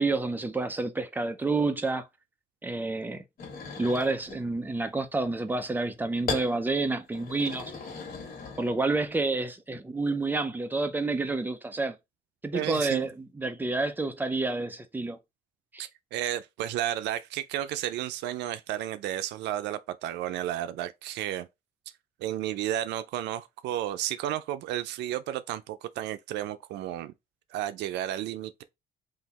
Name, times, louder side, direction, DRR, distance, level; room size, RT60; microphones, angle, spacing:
voice 1, 0.0-2.0 2.6-3.2 3.8-7.7 8.6-12.0 12.4-15.2 15.7-15.8, right 3 dB, 10° right, 0.5 m, -29 dB
sound 1, 3.4-4.4 6.3-6.5 7.1-9.0, left 5 dB, 60° left, 1.8 m, -37 dB
voice 2, 12.5-13.1 15.8-21.5 22.2-27.1 27.5-28.6, right 12 dB, 90° right, 0.4 m, -32 dB
3.8 x 2.7 x 4.0 m
cardioid pair, 145°, 17 cm